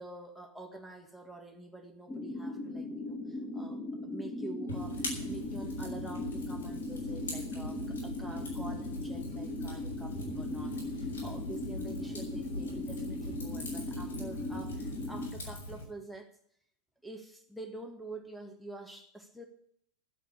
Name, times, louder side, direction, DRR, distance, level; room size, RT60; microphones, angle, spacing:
voice 1, 0.0-16.3 17.0-19.5, right 2 dB, ahead, 1 dB, 1.9 m, -47 dB
sound 1, 2.1-15.3, left 2 dB, 15° left, 2.5 m, -38 dB
Fire, 4.7-15.8, left 1 dB, 70° left, 5.8 m, -42 dB
11.0 x 8.0 x 9.8 m, 0.65 s
figure-of-eight pair, 90°, 0 cm